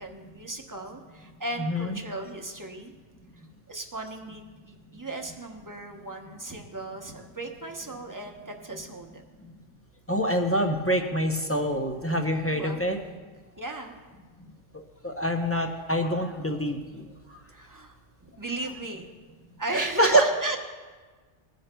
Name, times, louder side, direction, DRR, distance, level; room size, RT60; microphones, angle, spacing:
voice 1, 0.0-2.9 3.7-9.2 12.5-12.8 13.6-14.0 17.5-19.1 19.6-20.6, right 2 dB, 20° right, 3 dB, 0.8 m, -36 dB
voice 2, 1.6-2.0 10.1-13.0 15.0-17.0 19.7-20.2, equal, 20° left, 3 dB, 0.4 m, -25 dB
19.0 x 10.0 x 2.2 m, 1.4 s
omnidirectional pair, 1.3 m